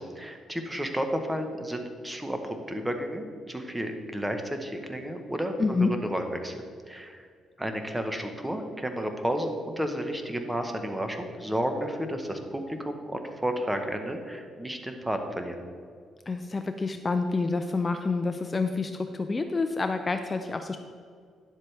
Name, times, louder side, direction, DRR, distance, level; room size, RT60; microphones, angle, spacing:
voice 1, 0.0-6.6 6.9-7.2 7.6-15.6, equal, 10° right, 5 dB, 1.0 m, -32 dB
voice 2, 5.6-5.9 16.3-20.8, left 3 dB, 30° left, 7 dB, 0.4 m, -28 dB
10.5 x 7.5 x 3.3 m, 2.1 s
cardioid pair, 90°, 0 cm